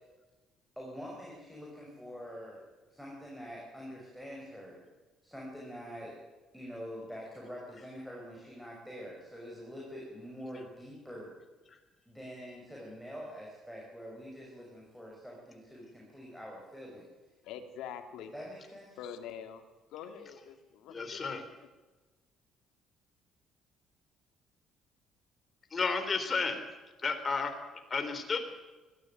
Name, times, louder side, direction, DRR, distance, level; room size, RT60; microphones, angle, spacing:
voice 1, 0.8-4.8 5.2-6.2 6.5-11.3 12.0-17.1 18.3-19.0, equal, ahead, -3 dB, 5.9 m, -45 dB
voice 2, 17.4-18.3 19.0-19.6 19.9-21.3, left 8 dB, 80° left, 6 dB, 2.6 m, -44 dB
voice 3, 20.9-21.4 25.7-26.6 27.0-27.5 27.9-28.4, left 4 dB, 30° left, 7 dB, 3.7 m, -32 dB
21.0 x 15.0 x 9.4 m, 1.2 s
cardioid pair, 115°, 0 cm